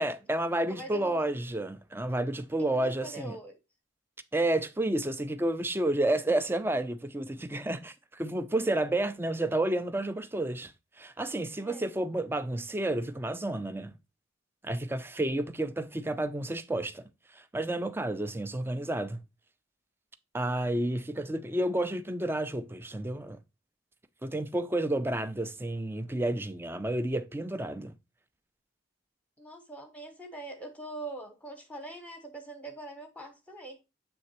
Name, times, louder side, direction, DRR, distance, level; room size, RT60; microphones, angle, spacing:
voice 1, 0.0-3.4 4.3-10.7 11.0-14.0 14.6-19.2 20.3-23.4 24.2-27.9, right 1 dB, 10° right, 0.4 m, -30 dB
voice 2, 0.7-1.2 2.7-3.6 11.6-11.9 29.4-33.8, right 2 dB, 5° left, 0.9 m, -43 dB
7.6 x 3.3 x 4.1 m
head